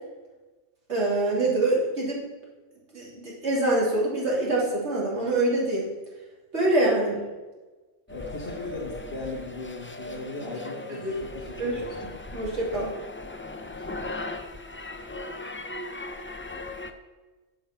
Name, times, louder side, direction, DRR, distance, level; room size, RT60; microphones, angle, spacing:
voice 1, 0.9-2.2 2.9-5.9 6.5-7.2 10.9-11.2 11.6-12.9, right 2 dB, 75° right, -4 dB, 3.2 m, -25 dB
voice 2, 8.1-11.9 14.0-14.1, left 3 dB, 60° left, -4 dB, 1.8 m, -37 dB
sound 1, 8.1-16.9, left 2 dB, 15° left, 0.4 m, -38 dB
11.0 x 6.9 x 5.9 m, 1.2 s
omnidirectional pair, 1.2 m